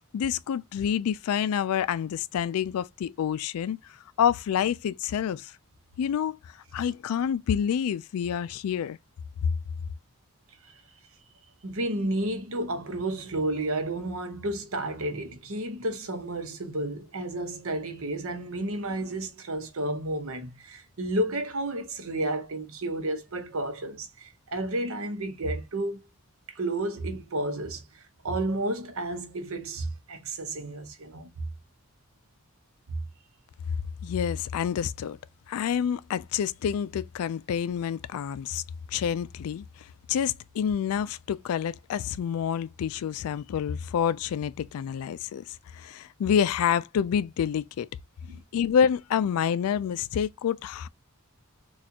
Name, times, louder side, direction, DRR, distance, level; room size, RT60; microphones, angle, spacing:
voice 1, 0.1-5.5 6.0-9.0 9.4-9.5 34.0-35.2 35.5-38.6 38.9-47.9 48.5-50.9, left 8 dB, 75° left, 0.3 m, -28 dB
voice 2, 11.6-26.0 26.5-27.8 28.2-31.3 32.9-33.0 48.3-48.4, right 1 dB, 70° right, 0.9 m, -31 dB
4.1 x 2.4 x 2.8 m
head